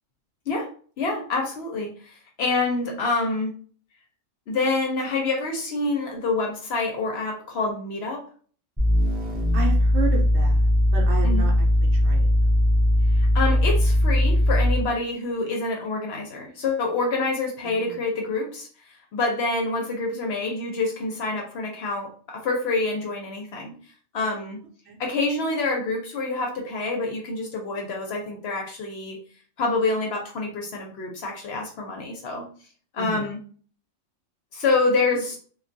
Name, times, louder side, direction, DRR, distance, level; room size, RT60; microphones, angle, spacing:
voice 1, 1.0-3.5 4.5-8.2 11.2-11.5 13.1-18.7 19.1-23.7 24.1-24.6 25.0-29.2 29.6-32.4 32.9-33.4 34.5-35.4, left 3 dB, 60° left, 1 dB, 0.8 m, -27 dB
sound 1, 8.8-14.9, left 1 dB, 10° right, 0.4 m, -19 dB
voice 2, 9.5-12.3 17.6-18.0 24.9-25.0 33.0-33.3, right 4 dB, 65° right, 1 dB, 0.8 m, -32 dB
2.2 x 2.2 x 2.5 m, 0.43 s
omnidirectional pair, 1.3 m